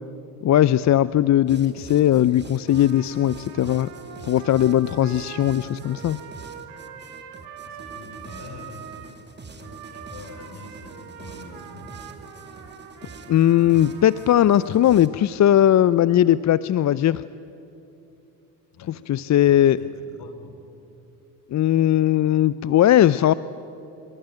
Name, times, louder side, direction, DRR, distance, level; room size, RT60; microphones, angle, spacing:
voice 1, 0.4-3.9 4.2-6.2 13.3-17.2 19.1-19.8 21.5-23.3, left 11 dB, 35° left, 17 dB, 0.7 m, -18 dB
sound 1, 1.5-15.1, right 3 dB, 20° right, 2.5 m, -44 dB
Trumpet, 2.7-9.1 9.6-14.9, right 8 dB, 70° right, 3.9 m, -43 dB
voice 2, 4.7-5.1 6.3-6.5 7.6-8.9 9.5-12.0 18.7-19.0 19.4-20.6, left 3 dB, 55° left, 6 dB, 5.2 m, -45 dB
25.5 x 23.0 x 9.1 m, 2.8 s
hypercardioid pair, 65°, 47 cm